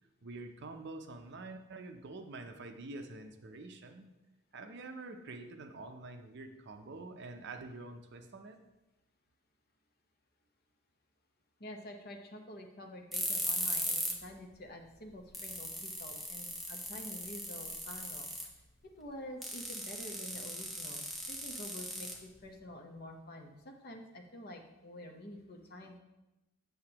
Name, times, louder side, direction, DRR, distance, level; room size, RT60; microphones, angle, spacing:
voice 1, 0.2-4.1 4.5-8.6, right 2 dB, 50° right, 6 dB, 0.6 m, -46 dB
voice 2, 11.6-18.3 18.8-26.0, left 1 dB, 45° left, 4 dB, 0.9 m, -48 dB
sound 1, 13.1-14.2 14.5-14.6 15.1-15.2 15.3-18.6 19.4-22.6, equal, ahead, 0.8 m, -38 dB
7.9 x 7.4 x 2.9 m, 0.97 s
head